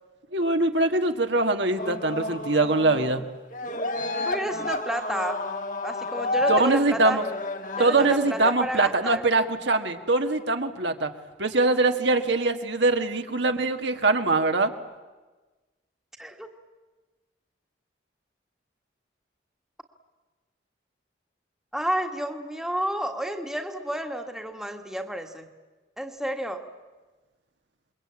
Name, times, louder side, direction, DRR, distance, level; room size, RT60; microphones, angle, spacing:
voice 1, 0.3-3.2 6.5-7.2 7.8-11.1 11.4-14.7, right 2 dB, 75° right, 5 dB, 1.9 m, -23 dB
sound 1, 1.8-3.3 3.5-8.5, left 2 dB, 45° left, 1.5 m, -30 dB
voice 2, 4.2-5.4 5.8-7.2 7.8-9.2 16.2-16.5 21.7-25.4 26.0-26.6, right 1 dB, 5° right, 4 dB, 1.6 m, -31 dB
28.0 x 22.5 x 8.9 m, 1.2 s
head